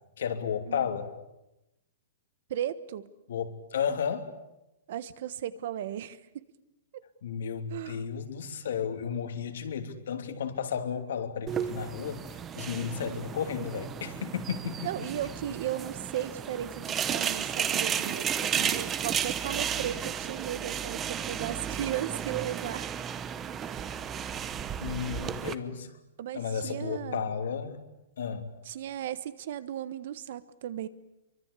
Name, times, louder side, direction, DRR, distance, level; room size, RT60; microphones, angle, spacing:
voice 1, 0.2-1.1 3.3-4.3 7.2-12.2 12.5-14.9 24.8-26.0 26.3-27.8 28.2-28.5, left 7 dB, 75° left, 6 dB, 3.0 m, -33 dB
voice 2, 2.5-3.1 4.9-6.4 7.7-8.1 13.0-13.3 14.8-22.9 23.6-24.0 26.2-27.3 28.7-30.9, right 11 dB, 50° right, 15 dB, 1.3 m, -36 dB
sound 1, 11.5-25.5, right 8 dB, 15° right, 0.9 m, -33 dB
25.0 x 24.0 x 8.4 m, 0.92 s
hypercardioid pair, 175°, 0 cm